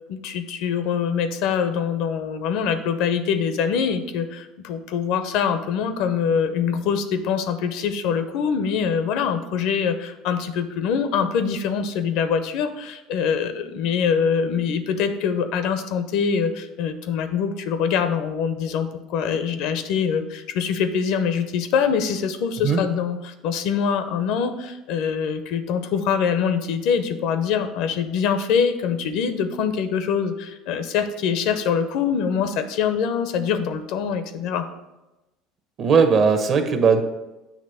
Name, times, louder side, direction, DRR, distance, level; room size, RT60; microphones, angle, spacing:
voice 1, 0.1-34.7, left 7 dB, 70° left, 10 dB, 0.6 m, -24 dB
voice 2, 35.8-37.0, right 5 dB, 45° right, 7 dB, 0.9 m, -18 dB
7.3 x 3.0 x 5.6 m, 1.0 s
supercardioid pair, 105°, 0 cm